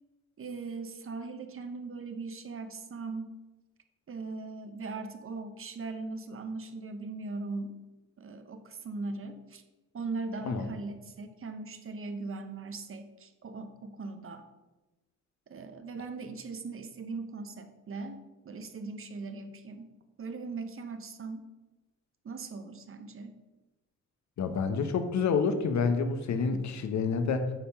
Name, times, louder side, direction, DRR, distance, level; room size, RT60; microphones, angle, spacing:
voice 1, 0.4-3.3 4.1-7.8 8.2-9.6 9.9-14.4 15.5-19.9 20.2-21.5 22.2-23.4, right 3 dB, 45° right, 8 dB, 0.8 m, -39 dB
voice 2, 24.4-27.5, left 5 dB, 60° left, 8 dB, 1.0 m, -28 dB
9.1 x 3.6 x 5.8 m, 1.1 s
cardioid pair, 100°, 31 cm